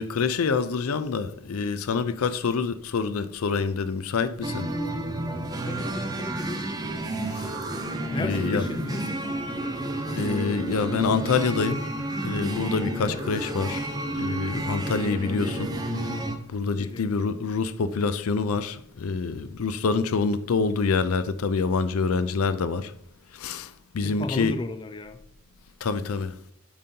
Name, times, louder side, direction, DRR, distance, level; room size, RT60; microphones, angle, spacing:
voice 1, 0.0-4.7 7.3-7.5 8.2-8.6 10.1-11.9 12.2-13.9 14.1-16.2 16.5-22.9 23.3-24.6 25.8-26.4, left 4 dB, 85° left, 0.5 m, -26 dB
sound 1, 4.4-16.4, right 1 dB, 15° right, 0.6 m, -31 dB
voice 2, 5.6-6.7 8.1-9.2 13.0-13.2 16.8-17.1 24.0-25.2, left 2 dB, 20° left, 0.3 m, -34 dB
8.7 x 5.4 x 2.8 m
head